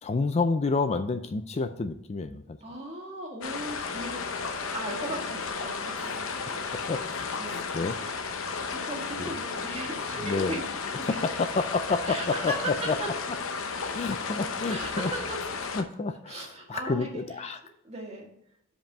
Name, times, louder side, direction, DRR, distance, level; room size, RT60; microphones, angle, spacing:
voice 1, 0.0-2.6 6.7-8.0 9.2-9.4 10.2-10.6 11.0-13.0 13.9-15.1 15.7-17.6, left 4 dB, 30° left, 9 dB, 0.3 m, -29 dB
voice 2, 2.6-6.5 7.4-7.6 8.7-10.6 10.9-11.0 12.1-13.1 14.7-15.4 16.3-17.5 17.8-18.3, right 1 dB, 30° right, 0 dB, 1.7 m, -37 dB
sound 1, 3.4-15.8, left 5 dB, 70° left, 0.8 m, -33 dB
5.3 x 5.1 x 5.9 m, 0.75 s
head